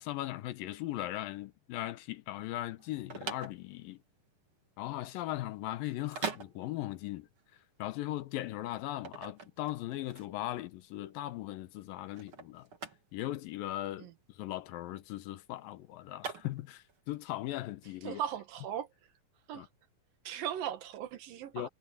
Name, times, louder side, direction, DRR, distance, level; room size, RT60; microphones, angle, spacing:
voice 1, 0.0-4.0 4.8-7.3 7.8-12.7 13.1-18.2 19.6-19.7 21.5-21.7, left 15 dB, 85° left, 2.6 m, -38 dB
sound 1, 2.8-17.0, right 5 dB, 40° right, 3.2 m, -44 dB
voice 2, 18.0-18.9 19.5-19.7 20.2-21.7, right 10 dB, 80° right, 3.2 m, -38 dB
omnidirectional pair, 4.0 m